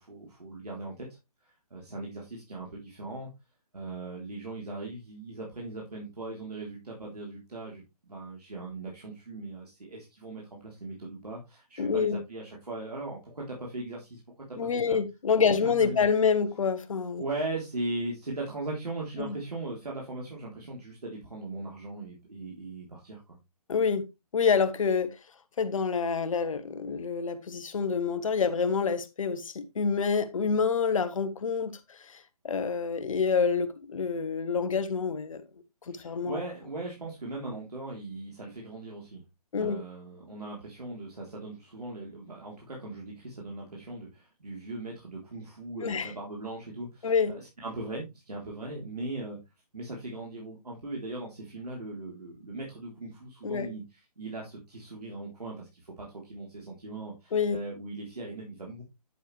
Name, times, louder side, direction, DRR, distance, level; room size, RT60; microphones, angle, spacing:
voice 1, 0.1-1.1 1.4-3.3 3.7-15.0 15.8-16.1 17.2-23.4 35.9-39.2 39.5-49.4 49.7-53.8 54.2-58.8, right 2 dB, 80° right, 3.6 m, -39 dB
voice 2, 11.8-12.2 14.6-17.2 19.2-19.3 23.7-24.1 24.3-25.2 25.6-35.4 35.9-36.4 39.5-39.8 45.8-46.1 47.0-47.3 53.4-53.7 57.3-57.6, left 5 dB, 55° left, 1.4 m, -27 dB
10.5 x 6.7 x 3.3 m
figure-of-eight pair, 140°, 20 cm